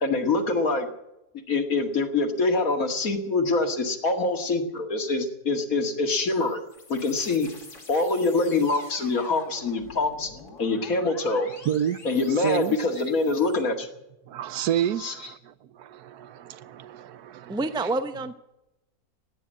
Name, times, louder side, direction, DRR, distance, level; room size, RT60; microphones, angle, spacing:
voice 1, 0.0-0.9 1.5-6.6 6.9-7.5 7.9-10.3 10.6-11.5 12.0-13.9 15.0-15.2, left 3 dB, 60° left, 2.4 m, -25 dB
sound 1, 6.0-13.6, left 3 dB, 85° left, 3.3 m, -47 dB
voice 2, 11.7-12.0 12.4-12.8 14.3-17.6, right 10 dB, 80° right, 1.3 m, -29 dB
voice 3, 17.5-18.3, right 2 dB, 5° right, 0.6 m, -27 dB
16.5 x 10.0 x 8.7 m
omnidirectional pair, 1.6 m